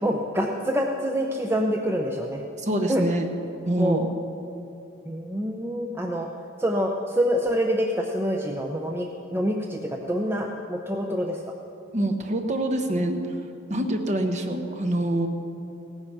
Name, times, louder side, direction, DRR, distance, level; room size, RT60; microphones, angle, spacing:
voice 1, 0.0-2.4 2.9-3.1 3.8-4.0 5.0-6.3 6.6-11.4, equal, 10° right, 2 dB, 0.6 m, -26 dB
voice 2, 2.6-3.3 3.7-4.1 11.9-13.2 13.7-15.3, right 1 dB, 35° right, 4 dB, 1.1 m, -25 dB
16.5 x 9.9 x 6.0 m, 2.8 s
head